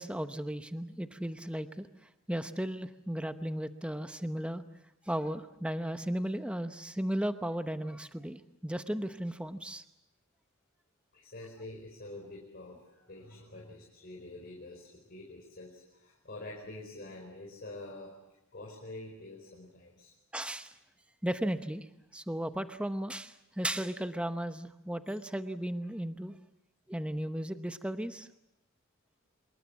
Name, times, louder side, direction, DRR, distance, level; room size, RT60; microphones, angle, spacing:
voice 1, 0.0-1.9 2.3-4.6 5.1-9.8 20.3-20.7 21.2-21.9 22.1-26.4 26.9-28.3, right 1 dB, 5° right, 9 dB, 0.8 m, -35 dB
voice 2, 11.1-18.2 18.5-20.1, left 2 dB, 50° left, -2 dB, 4.8 m, -47 dB
26.5 x 22.5 x 7.3 m, 0.87 s
head